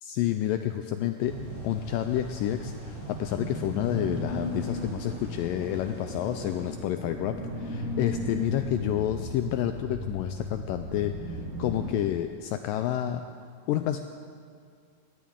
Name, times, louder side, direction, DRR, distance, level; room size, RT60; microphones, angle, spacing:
voice 1, 0.0-1.3 1.6-13.2 13.7-14.0, left 12 dB, 90° left, 8 dB, 1.9 m, -29 dB
sound 1, 1.2-6.7, left 1 dB, 25° left, 3.4 m, -47 dB
sound 2, 1.2-11.9, equal, 35° right, 2.9 m, -36 dB
20.5 x 17.0 x 3.7 m, 2.2 s
omnidirectional pair, 4.5 m